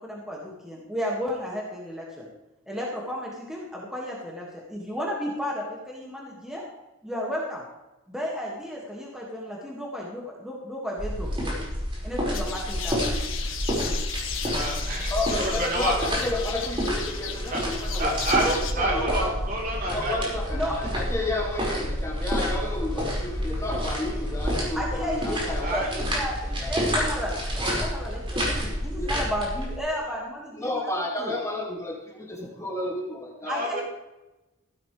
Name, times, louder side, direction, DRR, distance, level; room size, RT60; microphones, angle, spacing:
voice 1, 0.0-2.3 2.7-6.6 7.0-7.6 8.1-11.6 12.0-13.0 20.5-20.8 24.7-30.9 31.2-31.3 33.5-33.8, equal, 5° right, -4 dB, 2.1 m, -33 dB
sound 1, 11.0-29.8, equal, 25° right, 5.4 m, -29 dB
sound 2, 12.3-18.7, left 7 dB, 70° left, 1.8 m, -35 dB
voice 2, 14.5-15.9 17.5-17.6 18.0-20.4 25.6-25.9 33.4-33.8, right 1 dB, 45° right, -2 dB, 4.0 m, -28 dB
voice 3, 15.1-19.4 19.7-25.9 26.6-26.9 27.7-27.9 28.9-29.1 30.6-33.5, left 2 dB, 15° left, -2 dB, 2.4 m, -31 dB
15.5 x 12.5 x 3.4 m, 1.0 s
head